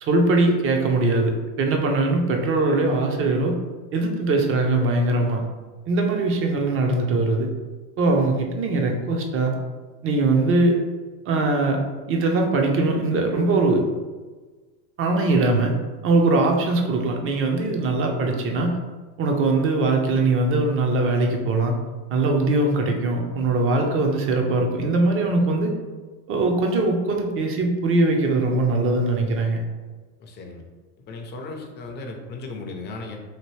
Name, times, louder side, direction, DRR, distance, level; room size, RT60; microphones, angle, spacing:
voice 1, 0.0-3.5 3.9-5.4 5.9-7.5 8.0-9.6 10.0-10.8 11.3-11.8 12.1-13.8 15.0-15.7 16.0-18.8 19.2-21.8 22.1-25.8 26.3-29.6, right 2 dB, 30° right, 3 dB, 0.5 m, -21 dB
voice 2, 30.2-30.6 31.1-33.2, left 3 dB, 25° left, 2 dB, 0.4 m, -36 dB
2.9 x 2.6 x 3.1 m, 1.3 s
supercardioid pair, 105°, 46 cm